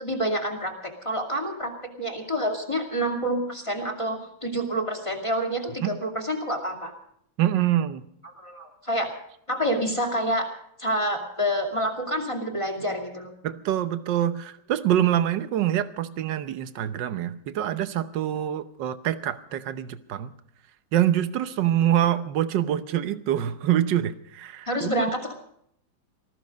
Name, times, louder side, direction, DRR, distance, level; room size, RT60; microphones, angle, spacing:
voice 1, 0.0-6.9 8.4-9.1 9.5-10.5 10.8-13.3 24.7-25.3, equal, 15° left, 2 dB, 2.4 m, -28 dB
voice 2, 7.4-8.0 13.4-20.3 20.9-24.9, right 11 dB, 65° right, 12 dB, 1.5 m, -25 dB
19.5 x 14.0 x 5.2 m, 0.69 s
omnidirectional pair, 2.2 m